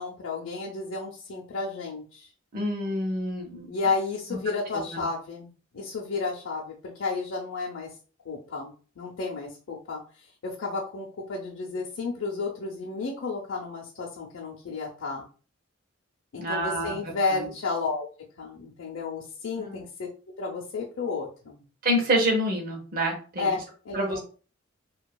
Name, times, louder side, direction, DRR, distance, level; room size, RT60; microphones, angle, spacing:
voice 1, 0.0-2.3 3.7-7.9 8.3-10.0 10.4-15.2 16.3-18.1 18.4-20.1 20.4-21.6 23.4-24.2, left 4 dB, 80° left, -3 dB, 0.5 m, -32 dB
voice 2, 2.5-3.7 4.7-5.0 16.4-17.0 17.3-17.4 19.6-19.8 21.8-23.5 23.9-24.2, equal, 45° right, 1 dB, 0.7 m, -27 dB
2.7 x 2.3 x 2.2 m, 0.38 s
head